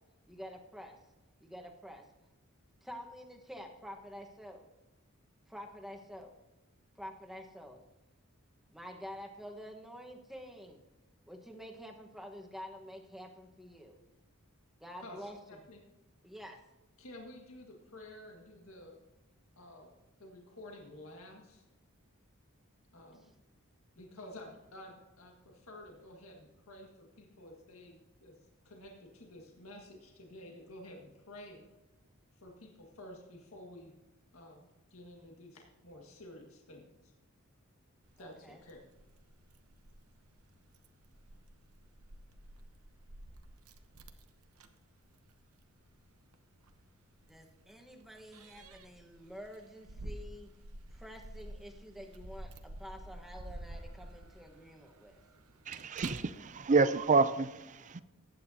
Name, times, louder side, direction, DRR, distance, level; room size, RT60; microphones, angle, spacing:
voice 1, 0.3-1.0 1.4-2.0 2.8-4.6 5.5-6.3 6.9-7.8 8.7-10.8 11.3-14.0 14.8-15.6 16.2-16.6 38.2-38.6 47.3-50.5 50.9-55.2, equal, ahead, 1.3 m, -48 dB
voice 2, 17.0-19.0 19.6-19.9 20.2-21.6 22.9-23.3 23.9-28.3 28.7-31.6 32.4-34.0 34.3-37.1 38.2-38.9, left 1 dB, 75° left, 1.8 m, -51 dB
Keys jangling, 38.0-57.1, right 1 dB, 85° right, 1.0 m, -51 dB
voice 3, 55.7-58.0, right 4 dB, 35° right, 0.5 m, -28 dB
19.5 x 9.0 x 2.8 m
head